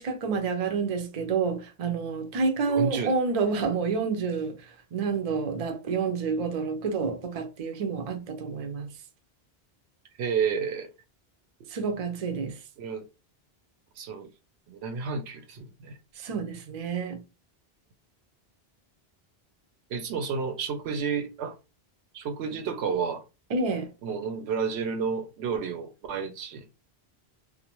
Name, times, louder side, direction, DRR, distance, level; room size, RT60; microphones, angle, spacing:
voice 1, 0.0-8.9 11.7-12.6 16.2-17.2 23.5-23.9, right 5 dB, 50° right, 0.5 m, -29 dB
voice 2, 2.7-3.1 10.2-10.9 11.6-11.7 12.8-13.0 14.0-14.3 14.7-15.9 19.9-21.6 22.1-23.2 24.0-26.7, right 6 dB, 85° right, 0.9 m, -31 dB
2.4 x 2.1 x 2.9 m
omnidirectional pair, 1.1 m